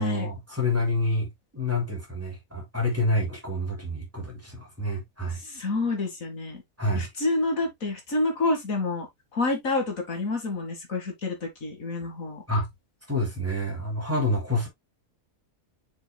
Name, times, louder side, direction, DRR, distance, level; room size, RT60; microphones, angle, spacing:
voice 1, 0.0-5.4 6.8-7.1 12.5-12.7 13.1-14.7, left 1 dB, 10° right, 3.3 m, -28 dB
voice 2, 5.4-6.6 6.9-9.1 9.3-12.4, left 2 dB, 70° left, 2.5 m, -28 dB
6.8 x 6.7 x 2.3 m
omnidirectional pair, 1.5 m